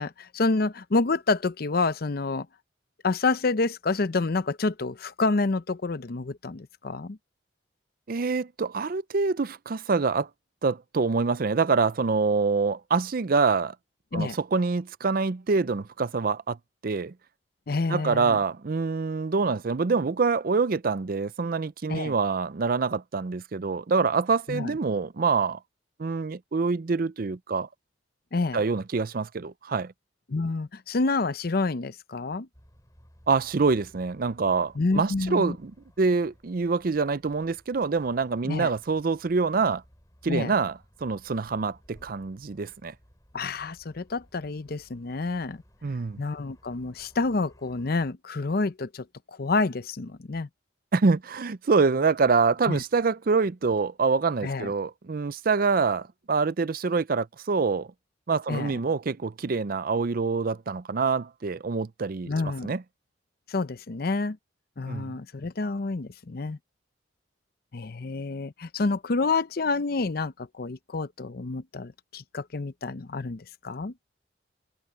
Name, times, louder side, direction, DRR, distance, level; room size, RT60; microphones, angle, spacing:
voice 1, 0.0-2.5 3.0-7.2 14.1-14.4 17.7-18.4 21.9-22.1 24.5-24.7 28.3-28.6 30.3-32.5 34.8-35.6 38.5-38.7 40.3-40.6 43.3-45.6 46.2-50.5 52.7-52.8 54.4-54.7 58.5-58.7 62.3-62.7 63.5-64.4 64.8-66.6 67.7-73.9, left 3 dB, 55° left, 0.6 m, -28 dB
voice 2, 8.1-10.3 10.6-13.7 14.1-16.6 16.8-17.1 17.9-25.6 26.0-27.7 28.5-29.9 33.3-35.7 36.0-39.8 40.2-42.9 45.8-46.2 50.9-57.9 58.3-62.8 64.9-65.1, right 4 dB, 50° right, 0.5 m, -26 dB
sound 1, 32.5-48.1, equal, 20° left, 5.7 m, -58 dB
head